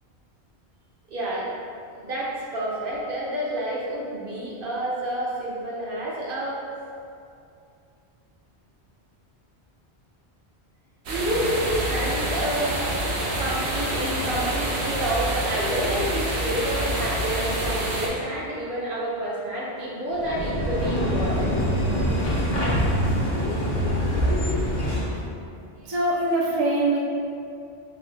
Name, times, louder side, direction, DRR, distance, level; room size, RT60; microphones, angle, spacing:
voice 1, 1.1-1.5 2.0-6.7 11.1-12.9 13.2-21.5 24.8-24.9 26.4-26.5, right 1 dB, 60° right, -5 dB, 0.9 m, -29 dB
sound 1, 11.1-18.1, right 1 dB, 85° right, 1.0 m, -27 dB
sound 2, 20.1-25.2, equal, 40° left, 0.7 m, -24 dB
voice 2, 25.9-27.0, right 2 dB, 35° right, -5 dB, 0.4 m, -23 dB
3.9 x 2.7 x 3.2 m, 2.5 s
omnidirectional pair, 1.1 m